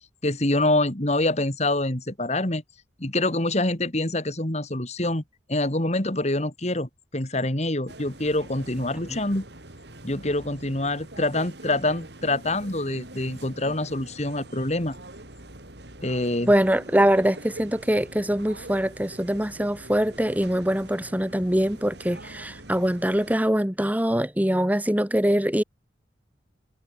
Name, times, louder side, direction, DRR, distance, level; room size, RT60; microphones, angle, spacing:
voice 1, 0.2-2.6 3.0-5.2 5.5-9.4 10.0-15.0 16.0-16.5, left 2 dB, 35° left, 2.6 m, -26 dB
sound 1, 7.9-23.4, right 1 dB, 65° right, 4.4 m, -43 dB
voice 2, 16.4-25.6, equal, 10° right, 1.3 m, -23 dB
head